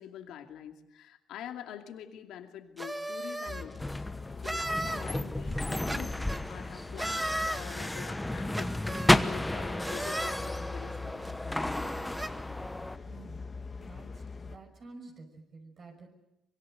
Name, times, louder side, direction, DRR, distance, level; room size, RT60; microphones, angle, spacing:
voice 1, 0.0-3.9 4.4-11.2, left 10 dB, 85° left, 5 dB, 2.4 m, -46 dB
sound 1, 2.8-3.7 4.4-5.1 5.9-6.4 7.0-7.6 8.5-9.1 9.8-10.4 11.2-11.3 11.7-12.3, right 1 dB, 15° right, 1.9 m, -35 dB
sound 2, 3.5-14.6, left 4 dB, 30° left, 2.0 m, -43 dB
sound 3, 3.8-13.0, left 1 dB, 10° left, 1.1 m, -32 dB
voice 2, 13.0-16.1, right 3 dB, 50° right, 2 dB, 6.1 m, -51 dB
25.0 x 22.5 x 7.9 m, 0.90 s
cardioid pair, 90°, 0 cm